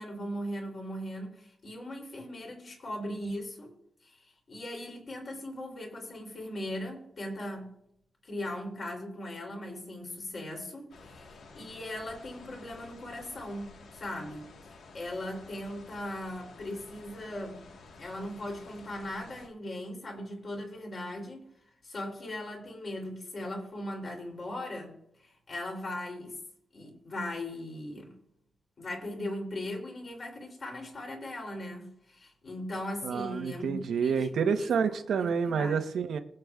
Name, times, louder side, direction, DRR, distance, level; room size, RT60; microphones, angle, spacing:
voice 1, 0.0-3.7 4.0-7.7 8.2-17.7 18.0-21.6 21.8-26.4 26.7-28.2 28.8-34.7 35.2-35.8, left 1 dB, 45° left, 0 dB, 3.0 m, -39 dB
Wind open space forrest, 10.9-19.5, left 3 dB, 90° left, 1.4 m, -52 dB
voice 2, 33.0-36.2, right 6 dB, 90° right, 8 dB, 0.9 m, -28 dB
23.0 x 7.8 x 2.4 m, 0.74 s
wide cardioid pair, 140°, 0 cm